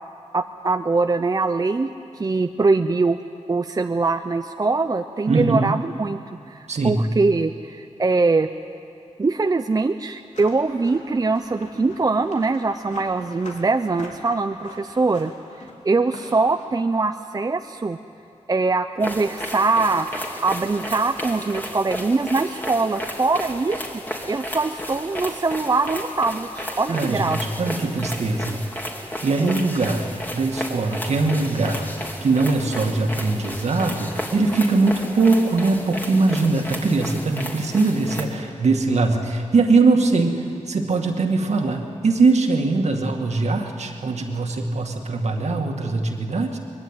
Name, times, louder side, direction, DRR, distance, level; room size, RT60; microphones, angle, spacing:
voice 1, 0.3-1.9 2.2-3.2 3.5-6.2 6.5-8.5 9.2-15.3 15.8-18.0 18.5-27.4 29.4-29.5, right 3 dB, 30° right, 7 dB, 0.6 m, -22 dB
voice 2, 5.3-5.8 6.7-7.1 26.9-28.6 29.2-30.1 30.3-31.9 32.2-46.6, right 3 dB, 65° right, 3 dB, 2.2 m, -21 dB
sound 1, 10.3-16.7, left 2 dB, 75° left, 3.4 m, -44 dB
sound 2, 19.0-38.2, equal, 15° left, 2.8 m, -33 dB
23.0 x 21.5 x 9.1 m, 2.6 s
wide cardioid pair, 105°, 12 cm